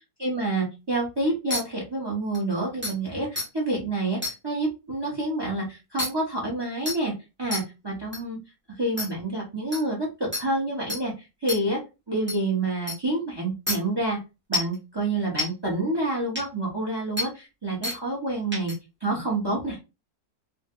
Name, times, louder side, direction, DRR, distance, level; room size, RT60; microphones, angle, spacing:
voice 1, 0.2-7.1 7.4-8.4 8.8-11.1 11.4-11.8 12.1-14.2 14.5-18.7 19.0-19.8, right 2 dB, 40° right, -2 dB, 0.3 m, -28 dB
sound 1, 1.5-1.6 2.3-2.4 2.8-2.9 3.4-3.5 4.2-4.3 6.0-6.1 6.9-7.0 7.5-7.6 8.1-8.2 9.0-9.1 9.7-9.8 10.3-10.4 10.9-11.0 11.5-11.6 12.3-12.4 12.9-13.0 13.7-13.8 14.5-14.7 15.4-15.5 16.4-16.5 17.2-17.3 17.8-18.0 18.5-18.7, left 2 dB, 10° right, 0.7 m, -28 dB
3.2 x 2.7 x 2.3 m, 0.27 s
omnidirectional pair, 1.9 m